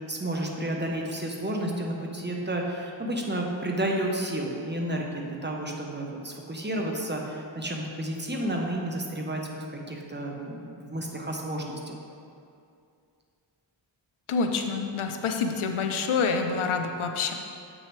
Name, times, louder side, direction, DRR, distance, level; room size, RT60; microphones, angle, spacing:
voice 1, 0.1-9.4 9.7-12.0, right 1 dB, 20° right, 0 dB, 0.9 m, -31 dB
voice 2, 14.3-17.3, left 5 dB, 90° left, 5 dB, 0.7 m, -27 dB
7.5 x 6.3 x 3.2 m, 2.5 s
wide cardioid pair, 75°, 48 cm